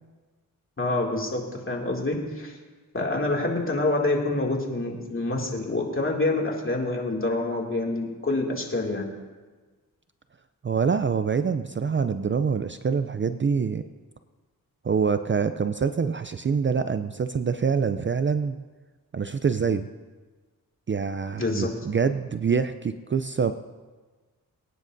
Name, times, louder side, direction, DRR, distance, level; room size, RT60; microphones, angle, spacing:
voice 1, 0.8-1.4 1.7-2.5 2.9-9.1 21.4-21.7, left 2 dB, 35° left, -1 dB, 2.5 m, -26 dB
voice 2, 10.6-13.8 14.8-18.6 19.1-19.9 20.9-23.5, right 6 dB, 35° right, 10 dB, 0.4 m, -25 dB
23.5 x 9.7 x 2.7 m, 1.3 s
cardioid pair, 65°, 35 cm